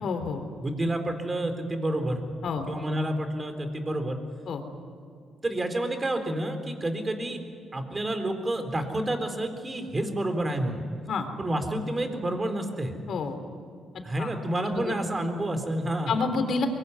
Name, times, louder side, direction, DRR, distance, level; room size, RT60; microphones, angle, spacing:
voice 1, 0.0-0.4 2.4-2.7 4.5-4.6 11.1-11.3 13.1-13.4 14.2-14.3 14.8-14.9 16.1-16.7, left 4 dB, 60° left, 7 dB, 3.6 m, -28 dB
voice 2, 0.6-2.2 2.7-4.2 5.4-7.4 7.7-10.8 11.4-12.9 14.0-16.2, right 1 dB, 25° right, 6 dB, 3.8 m, -29 dB
23.5 x 22.5 x 9.7 m, 2.4 s
cardioid pair, 90°, 0 cm